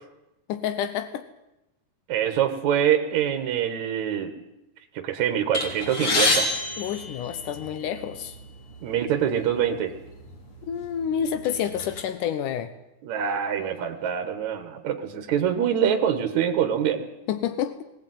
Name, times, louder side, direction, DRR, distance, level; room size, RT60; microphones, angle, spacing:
voice 1, 0.5-1.3 6.8-8.4 10.7-12.7 17.3-17.8, left 9 dB, 85° left, 11 dB, 2.5 m, -29 dB
voice 2, 2.1-4.3 4.9-6.5 8.8-9.9 13.0-17.0, right 9 dB, 70° right, 6 dB, 2.7 m, -25 dB
sound 1, 5.5-7.9 8.7-8.8 9.2-9.3 10.2-10.4 10.8-12.0, left 2 dB, 45° left, 4.3 m, -26 dB
21.0 x 18.0 x 9.3 m, 0.90 s
omnidirectional pair, 3.5 m